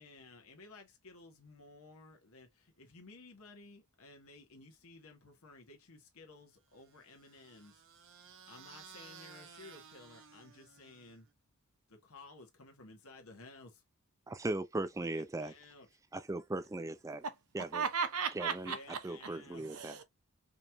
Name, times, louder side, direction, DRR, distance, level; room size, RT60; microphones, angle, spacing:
voice 1, 0.0-7.8 8.5-11.3 11.9-13.8 15.0-15.9 18.6-19.8, left 3 dB, 70° left, 1.2 m, -55 dB
sound 1, 6.8-11.3, right 7 dB, 60° right, 0.8 m, -56 dB
voice 2, 14.3-15.5 16.1-17.2 17.5-17.8 18.4-18.7 19.0-20.0, right 2 dB, 15° right, 0.4 m, -38 dB
voice 3, 17.2-19.1 19.6-20.0, right 6 dB, 85° right, 0.9 m, -36 dB
5.1 x 3.0 x 2.2 m
head